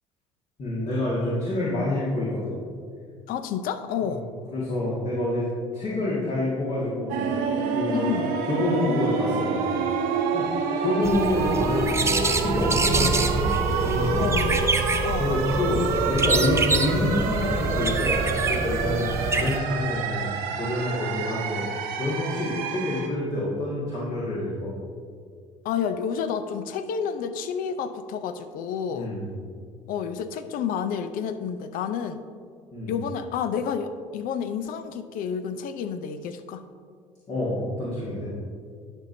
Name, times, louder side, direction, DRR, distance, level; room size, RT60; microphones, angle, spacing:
voice 1, 0.6-2.6 4.0-4.2 4.5-5.5 5.7-7.2 7.7-10.5 10.8-12.0 12.4-14.5 14.8-24.7 28.9-29.3 32.7-33.0 37.3-38.3, left 1 dB, 45° left, -7 dB, 1.9 m, -28 dB
voice 2, 3.3-4.2 7.9-8.4 14.1-14.6 15.0-15.4 25.6-29.1 29.9-32.2 32.9-36.6, left 7 dB, 60° left, 10 dB, 0.5 m, -30 dB
sound 1, 7.1-23.1, right 5 dB, 70° right, 0.9 m, -28 dB
sound 2, 11.0-19.6, right 3 dB, 15° right, 0.6 m, -26 dB
11.0 x 5.3 x 2.7 m, 2.1 s
hypercardioid pair, 60°, 16 cm